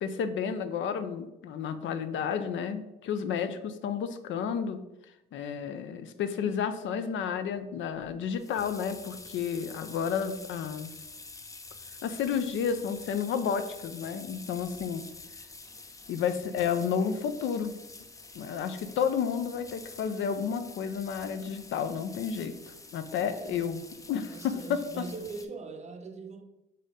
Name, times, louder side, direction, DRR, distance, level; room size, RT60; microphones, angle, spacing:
voice 1, 0.0-4.8 5.3-10.9 12.0-15.1 16.1-17.7 18.3-22.6 22.9-25.0, left 7 dB, 70° left, 0.5 m, -31 dB
sound 1, 8.0-25.5, left 3 dB, 15° left, 0.4 m, -48 dB
voice 2, 23.3-23.9 24.3-26.4, right 4 dB, 35° right, 0.6 m, -42 dB
4.0 x 2.7 x 4.8 m
cardioid pair, 90°, 20 cm